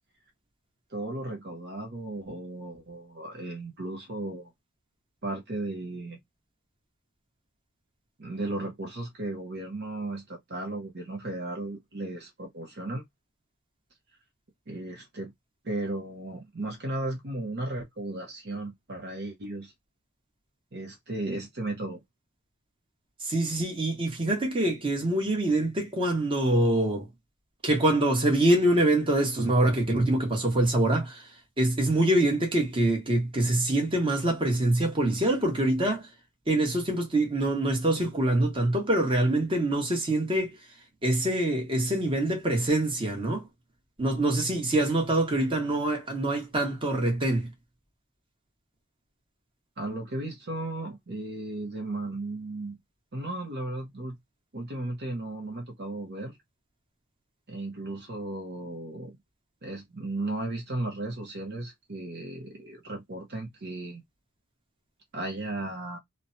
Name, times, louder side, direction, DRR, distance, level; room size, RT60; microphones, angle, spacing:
voice 1, 0.9-4.5 5.2-6.2 8.2-13.0 14.7-15.3 15.6-19.7 20.7-22.0 49.8-52.8 53.1-54.2 54.5-56.4 57.5-59.2 59.6-64.0 65.1-66.0, right 2 dB, 50° right, 0.9 m, -35 dB
voice 2, 23.2-27.1 27.6-31.2 31.6-36.1 36.5-40.6 41.0-43.4 44.0-47.5, right 1 dB, 25° right, 1.1 m, -25 dB
3.2 x 2.2 x 2.6 m
head